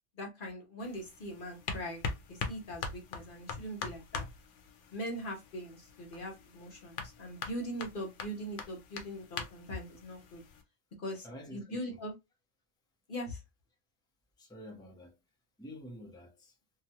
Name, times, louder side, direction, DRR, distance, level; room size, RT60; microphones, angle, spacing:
voice 1, 0.2-4.2 4.9-10.4 11.0-12.1 13.1-13.4, equal, 50° left, 0.9 m, -41 dB
sound 1, 0.8-10.6, left 5 dB, 85° left, 1.0 m, -43 dB
voice 2, 11.2-12.0 14.4-15.2 15.6-16.6, equal, 5° left, 0.6 m, -48 dB
2.8 x 2.3 x 2.7 m
omnidirectional pair, 1.2 m